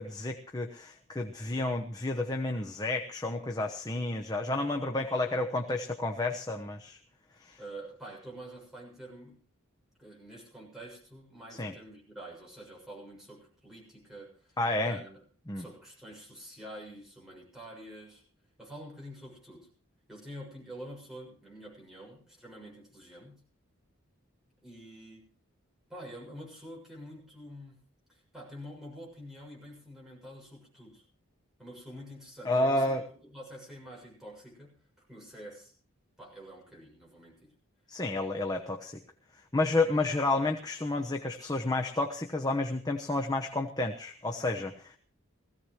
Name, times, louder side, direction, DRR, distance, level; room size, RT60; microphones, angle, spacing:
voice 1, 0.0-7.0 7.4-7.6 11.6-11.7 14.6-15.0 15.5-15.6 32.4-33.0 37.9-39.0 39.5-45.0, left 2 dB, 15° left, 3 dB, 1.0 m, -30 dB
voice 2, 7.6-9.4 10.0-14.6 14.8-15.2 15.5-18.2 18.6-19.7 20.1-23.4 24.6-25.3 25.9-27.8 28.1-31.0 31.6-35.7 36.2-37.5, right 1 dB, ahead, -3 dB, 6.7 m, -47 dB
20.0 x 16.0 x 3.2 m, 0.42 s
head